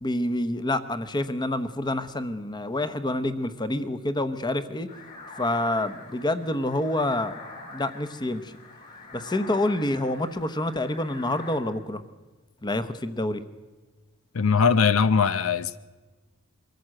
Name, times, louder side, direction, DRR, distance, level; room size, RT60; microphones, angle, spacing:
voice 1, 0.0-4.9 5.4-7.4 7.7-8.5 9.1-12.0 12.6-13.4, left 1 dB, 20° left, 0.9 m, -27 dB
sound 1, 4.9-11.6, left 2 dB, 50° left, 4.9 m, -45 dB
voice 2, 14.3-15.8, left 5 dB, 80° left, 0.6 m, -21 dB
23.5 x 14.5 x 7.7 m
head